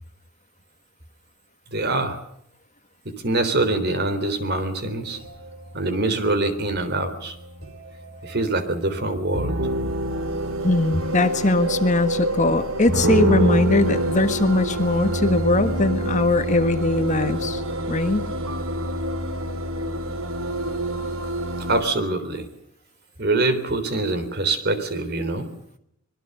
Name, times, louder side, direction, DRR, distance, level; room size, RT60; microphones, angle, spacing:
voice 1, 1.7-2.2 3.1-5.2 5.7-7.4 8.2-9.6 21.6-22.5 23.2-25.5, right 2 dB, 50° right, 10 dB, 3.7 m, -24 dB
sound 1, 3.6-21.8, right 1 dB, 75° right, 2.5 m, -27 dB
voice 2, 10.6-17.6 17.9-18.3, left 2 dB, 35° left, 8 dB, 1.6 m, -21 dB
25.0 x 22.0 x 6.8 m, 0.74 s
head